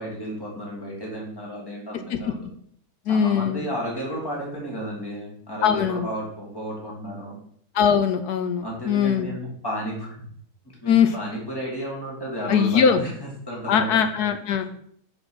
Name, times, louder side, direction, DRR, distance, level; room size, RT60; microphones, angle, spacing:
voice 1, 0.0-2.4 3.1-7.4 8.6-10.3 10.8-14.0, equal, 15° left, -3 dB, 2.1 m, -33 dB
voice 2, 3.1-3.6 5.6-6.1 7.7-9.3 10.9-11.1 12.5-13.0 13.7-14.6, left 7 dB, 75° left, 9 dB, 1.1 m, -21 dB
6.0 x 4.7 x 6.3 m, 0.64 s
omnidirectional pair, 1.8 m